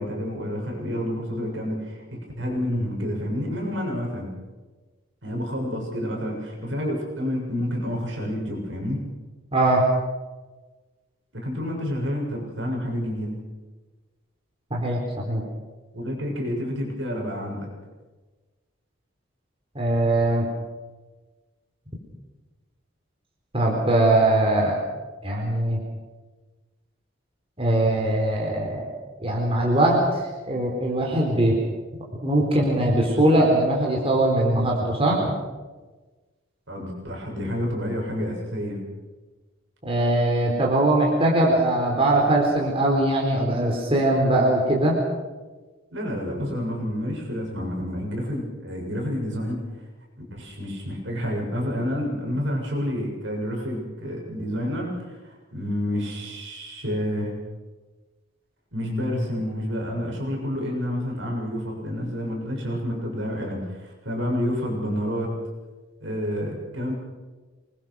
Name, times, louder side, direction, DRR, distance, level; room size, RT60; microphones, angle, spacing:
voice 1, 0.0-4.3 5.2-9.0 11.3-13.3 15.9-17.7 36.7-38.8 45.9-49.6 50.2-57.3 58.7-65.3 66.0-66.9, equal, 70° right, 0 dB, 6.9 m, -29 dB
voice 2, 9.5-9.8 14.7-15.0 15.3-15.4 19.7-20.5 23.5-24.8 25.2-25.8 27.6-28.9 29.2-31.5 32.2-35.3 39.8-44.9, right 1 dB, 30° right, -1 dB, 4.1 m, -21 dB
27.5 x 21.0 x 6.3 m, 1.3 s
head